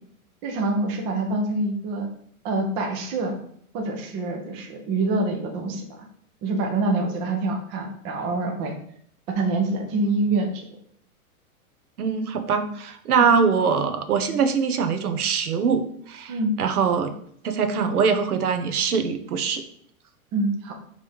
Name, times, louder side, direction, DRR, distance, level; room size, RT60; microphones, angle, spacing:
voice 1, 0.4-2.1 2.4-3.4 3.7-6.1 6.4-8.7 9.3-10.7 13.1-13.3 16.3-16.5 20.3-20.7, right 2 dB, 15° right, 2 dB, 0.3 m, -26 dB
voice 2, 12.0-17.1 17.4-19.6, right 6 dB, 90° right, 9 dB, 1.0 m, -23 dB
5.3 x 3.4 x 5.2 m, 0.65 s
hypercardioid pair, 135°, 43 cm